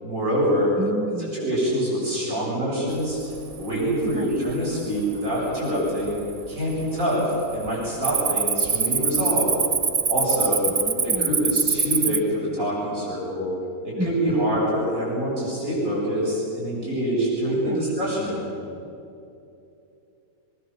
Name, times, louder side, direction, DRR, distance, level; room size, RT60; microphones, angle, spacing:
voice 1, 0.0-0.7 1.2-3.2 3.6-6.2 6.5-9.5 10.1-10.6 10.9-13.5 13.8-18.5, equal, 65° right, -6 dB, 7.8 m, -25 dB
voice 2, 0.8-1.4 4.0-4.4 10.8-11.5 14.0-14.6 17.7-17.9, right 1 dB, 5° right, 4 dB, 1.3 m, -32 dB
Cricket, 3.2-3.7 4.1-4.5 5.1-5.2 5.8-6.5 6.7-7.0 7.3-12.2, right 6 dB, 40° right, 0.5 m, -24 dB
24.0 x 22.0 x 7.2 m, 2.7 s
omnidirectional pair, 1.5 m